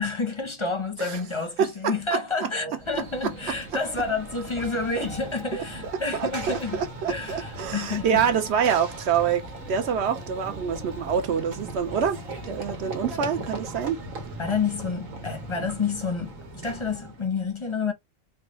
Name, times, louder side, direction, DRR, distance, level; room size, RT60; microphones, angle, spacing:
voice 1, 0.0-6.8 7.1-8.3 14.4-17.9, left 4 dB, 30° left, 0.6 m, -29 dB
voice 2, 1.6-1.9 2.4-2.5 5.5-5.6 6.1-9.4 9.7-12.2 12.4-14.0, right 7 dB, 65° right, 0.8 m, -26 dB
Run / Train, 2.8-17.2, right 2 dB, 85° right, 1.3 m, -38 dB
4.0 x 2.3 x 3.0 m
omnidirectional pair, 1.4 m